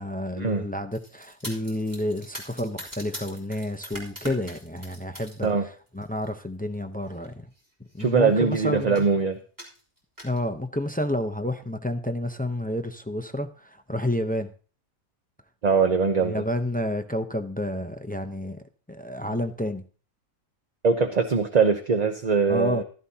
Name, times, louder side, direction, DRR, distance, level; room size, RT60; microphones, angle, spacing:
voice 1, 0.0-7.5 7.9-9.0 10.2-14.5 16.2-18.6 18.9-19.8 22.5-22.8, left 1 dB, 10° left, 7 dB, 0.4 m, -30 dB
sound 1, 0.9-5.5 5.9-6.3 7.1-7.3 7.6-7.7 7.9-8.5 9.0-9.1 9.6-10.4, equal, 15° right, 3.4 m, -42 dB
voice 2, 8.0-9.4 15.6-16.3 20.8-22.8, right 5 dB, 35° right, 6 dB, 0.7 m, -22 dB
15.0 x 13.5 x 2.8 m, 0.39 s
omnidirectional pair, 1.5 m